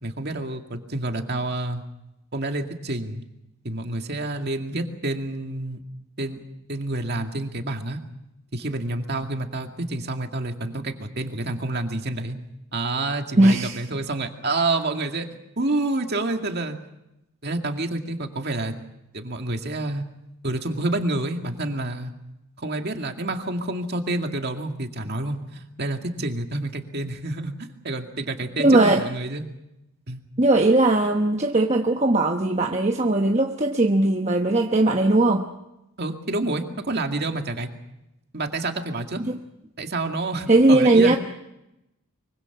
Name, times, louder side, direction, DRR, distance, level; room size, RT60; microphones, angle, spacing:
voice 1, 0.0-1.8 2.3-3.2 3.6-5.8 6.2-6.4 6.7-8.0 8.5-12.4 12.7-15.3 15.6-16.8 17.4-18.7 19.1-20.0 20.4-22.1 22.6-29.4 30.1-30.2 36.0-37.7 38.3-39.2 39.8-41.2, right 2 dB, 45° right, 4 dB, 2.2 m, -28 dB
voice 2, 13.4-13.8 28.6-29.0 30.4-35.5 39.3-39.4 40.5-41.2, right 2 dB, 30° right, 3 dB, 1.1 m, -19 dB
24.5 x 24.0 x 6.0 m, 0.89 s
head